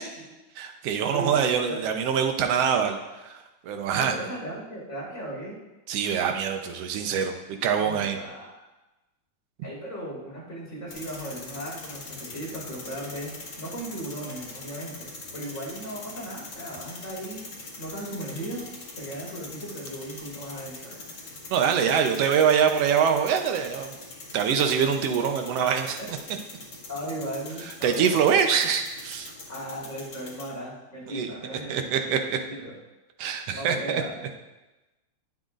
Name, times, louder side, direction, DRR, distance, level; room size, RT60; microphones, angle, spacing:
voice 1, 0.6-4.1 5.9-8.2 21.5-23.9 24.3-26.2 27.8-29.3 31.1-31.3 31.7-32.4 33.2-34.0, right 7 dB, 70° right, 5 dB, 1.5 m, -24 dB
voice 2, 1.1-1.8 3.9-5.5 7.7-8.7 9.6-17.5 17.8-18.7 19.0-21.0 26.9-28.2 29.5-31.7 32.1-32.2 32.5-32.7 33.5-34.2, right 1 dB, 25° left, -5 dB, 4.8 m, -37 dB
sound 1, 10.9-30.4, left 2 dB, 40° left, 2.6 m, -43 dB
21.0 x 7.9 x 2.5 m, 1.1 s
omnidirectional pair, 3.7 m